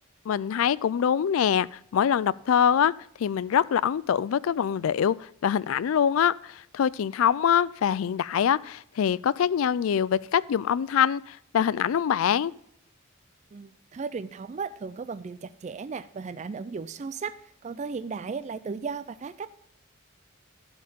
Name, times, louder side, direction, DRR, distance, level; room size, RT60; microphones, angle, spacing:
voice 1, 0.3-2.9 3.2-12.5, left 8 dB, 80° left, 21 dB, 0.3 m, -24 dB
voice 2, 13.5-17.3 17.6-19.5, right 5 dB, 35° right, 13 dB, 0.3 m, -35 dB
12.0 x 4.4 x 6.7 m, 0.69 s
head